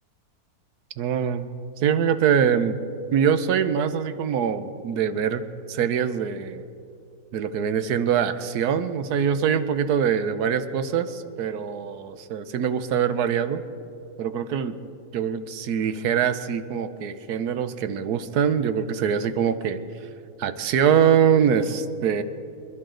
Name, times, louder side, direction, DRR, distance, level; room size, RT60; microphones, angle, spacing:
voice 1, 1.0-2.8 3.1-5.4 5.7-6.6 7.3-13.6 14.2-14.8 15.1-19.8 20.4-22.2, right 8 dB, 75° right, 11 dB, 1.2 m, -23 dB
26.0 x 11.5 x 3.9 m, 2.6 s
omnidirectional pair, 1.7 m